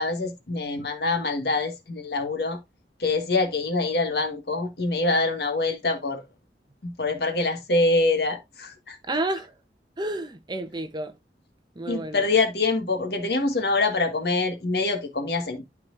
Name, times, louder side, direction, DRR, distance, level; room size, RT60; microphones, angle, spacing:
voice 1, 0.0-2.6 3.0-6.2 6.8-9.0 11.9-15.7, left 3 dB, 60° left, 1.7 m, -25 dB
voice 2, 9.1-9.5 10.0-11.1 11.8-12.2, right 2 dB, 25° right, 0.8 m, -30 dB
12.5 x 4.6 x 2.6 m
head